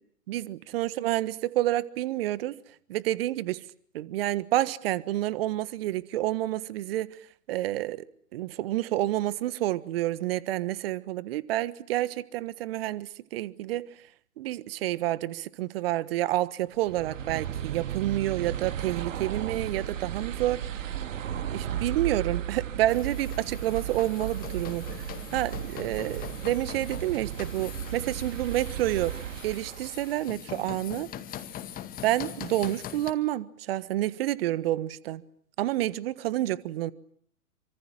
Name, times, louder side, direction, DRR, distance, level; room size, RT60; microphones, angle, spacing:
voice 1, 0.3-2.6 2.9-3.6 3.9-7.1 7.5-8.0 8.3-13.9 14.4-20.7 21.5-29.2 29.4-31.1 32.0-35.2 35.6-36.9, right 14 dB, 40° right, 1.5 m, -29 dB
sound 1, 16.7-30.3, right 9 dB, 55° right, 2.0 m, -35 dB
sound 2, 22.9-33.1, left 11 dB, 20° left, 2.1 m, -42 dB
28.5 x 25.5 x 7.6 m
figure-of-eight pair, 120°, 45 cm